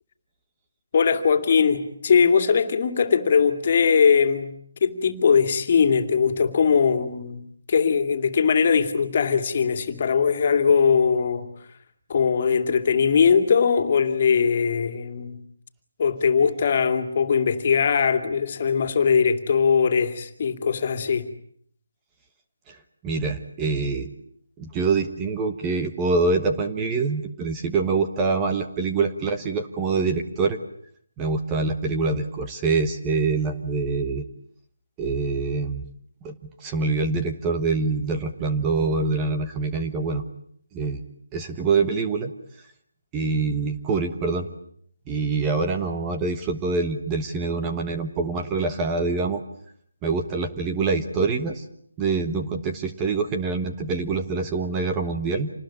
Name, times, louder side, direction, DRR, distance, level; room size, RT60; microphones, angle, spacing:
voice 1, 0.9-4.5 4.8-7.4 7.7-11.5 12.1-15.4 16.0-21.3, left 6 dB, 40° left, 2.6 m, -20 dB
voice 2, 23.0-24.1 24.6-30.6 31.2-34.2 35.0-35.8 36.2-40.2 40.7-41.0 41.3-42.3 43.1-44.5 45.1-49.4 50.0-51.6 52.0-55.5, right 4 dB, 15° right, 1.3 m, -25 dB
27.5 x 20.0 x 8.9 m
figure-of-eight pair, 165°, 0 cm